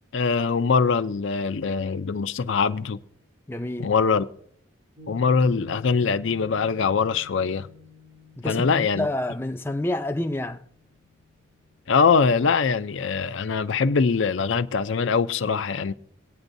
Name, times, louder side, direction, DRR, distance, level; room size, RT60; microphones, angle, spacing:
voice 1, 0.1-3.0 3.8-4.3 5.1-7.7 8.4-9.1 11.9-15.9, left 5 dB, 70° left, 0.5 m, -22 dB
voice 2, 3.5-3.9 8.4-10.6, left 1 dB, 10° left, 0.4 m, -28 dB
Piano, 5.0-11.6, left 5 dB, 85° right, 3.7 m, -49 dB
23.0 x 9.0 x 2.6 m
head